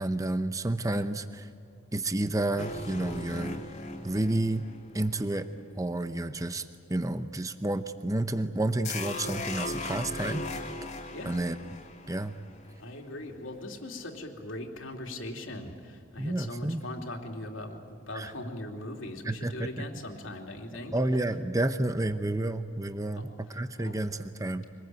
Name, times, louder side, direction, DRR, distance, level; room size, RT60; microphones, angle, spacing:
voice 1, 0.0-1.5 1.9-3.6 4.0-4.6 4.9-5.5 5.7-10.4 11.3-11.6 12.1-12.3 16.2-16.8 18.1-18.3 19.2-19.7 20.9-24.7, right 1 dB, 15° right, 10 dB, 0.8 m, -30 dB
sound 1, 2.6-6.0 8.8-13.0, left 2 dB, 35° left, 2.1 m, -38 dB
voice 2, 12.8-21.2 23.1-24.0, left 1 dB, 80° left, 2 dB, 2.9 m, -40 dB
25.0 x 20.0 x 9.3 m, 2.4 s
head